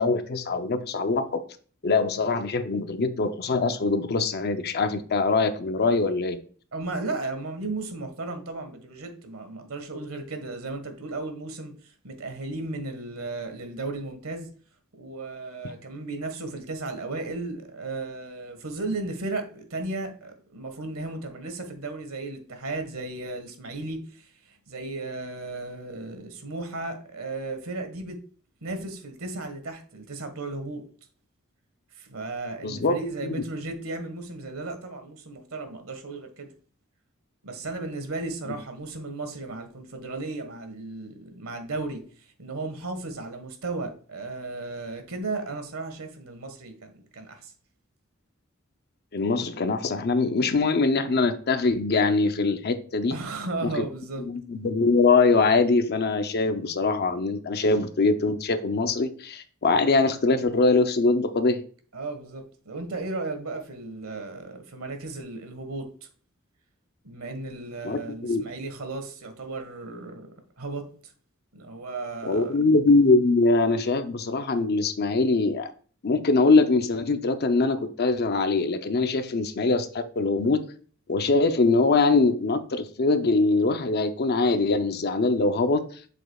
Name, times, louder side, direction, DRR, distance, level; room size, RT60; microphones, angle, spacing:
voice 1, 0.0-1.4 1.8-6.4 15.6-15.7 32.6-32.9 33.2-33.4 49.1-53.1 53.6-53.8 54.3-61.6 67.8-68.4 72.2-75.7 76.0-80.6 81.1-85.8, left 3 dB, 50° left, 0.6 m, -23 dB
voice 2, 6.7-14.5 15.0-28.2 28.6-30.8 31.9-36.5 37.4-47.5 53.1-54.2 61.9-65.9 67.0-70.3 70.6-71.1 71.5-72.6, right 2 dB, 85° right, 1.5 m, -35 dB
8.0 x 6.2 x 2.3 m
head